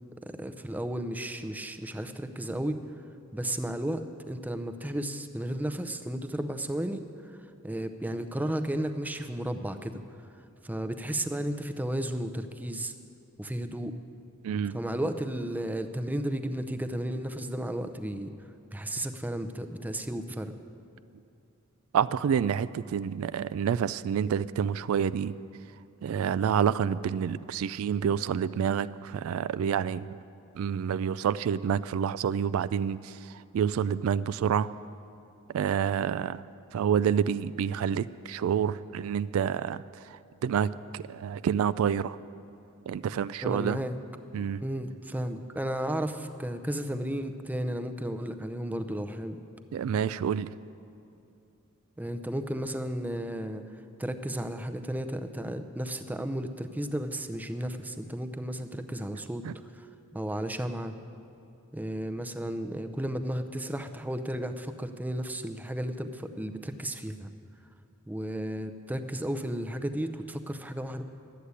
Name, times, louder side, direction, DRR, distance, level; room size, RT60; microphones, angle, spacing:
voice 1, 0.3-2.8 3.3-7.1 7.6-10.0 10.6-12.9 13.4-14.0 14.7-18.3 18.7-20.5 43.4-44.0 44.6-49.4 52.0-53.6 54.0-59.5 59.7-60.9 61.7-67.3 68.1-71.0, right 1 dB, 10° right, 8 dB, 0.5 m, -33 dB
voice 2, 14.4-14.8 21.9-25.4 26.0-30.2 30.6-34.7 35.5-36.4 36.7-42.2 42.9-43.8 44.3-44.6 49.7-50.5 59.4-59.5, right 8 dB, 70° right, 16 dB, 0.3 m, -28 dB
11.5 x 8.3 x 9.5 m, 2.7 s
head